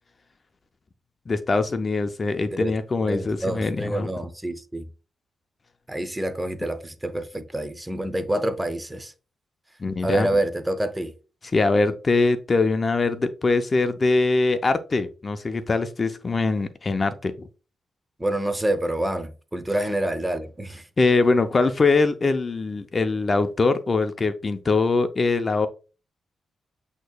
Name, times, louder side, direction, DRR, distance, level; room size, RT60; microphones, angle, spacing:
voice 1, 1.3-4.1 9.8-10.3 11.5-17.3 21.0-25.7, left 3 dB, 40° left, 0.5 m, -22 dB
voice 2, 3.1-4.9 5.9-9.1 10.0-11.1 18.2-20.8, right 1 dB, 15° right, 0.6 m, -27 dB
8.0 x 2.9 x 2.3 m
cardioid pair, 65°, 0 cm